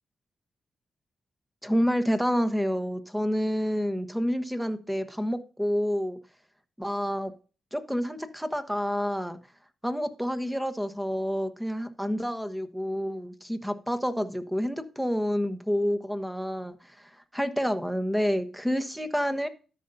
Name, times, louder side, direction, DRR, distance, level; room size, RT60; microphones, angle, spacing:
voice 1, 1.6-6.2 6.8-7.3 7.7-9.4 9.8-19.5, equal, 5° right, 1.1 m, -28 dB
13.5 x 5.5 x 2.7 m
cardioid pair, 55°, 0 cm